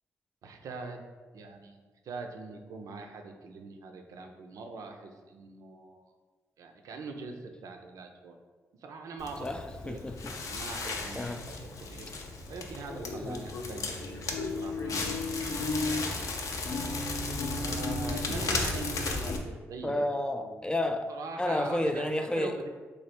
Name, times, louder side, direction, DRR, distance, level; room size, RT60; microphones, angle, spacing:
voice 1, 0.4-1.0 1.3-6.0 6.6-8.4 8.8-9.5 9.8-10.0 10.4-11.6 11.9-12.1 12.5-16.0 17.5-20.0 20.4-20.7 21.1-22.1 22.4-22.7, right 4 dB, 65° right, 4 dB, 0.5 m, -43 dB
Crackle, 9.2-19.4, left 3 dB, 60° left, 0.6 m, -34 dB
voice 2, 9.4-10.3 11.1-11.5 13.2-13.4 17.3-17.6 19.8-21.1 21.4-22.6, left 1 dB, 15° left, 7 dB, 0.3 m, -31 dB
3.3 x 2.3 x 4.2 m, 1.3 s
hypercardioid pair, 50°, 6 cm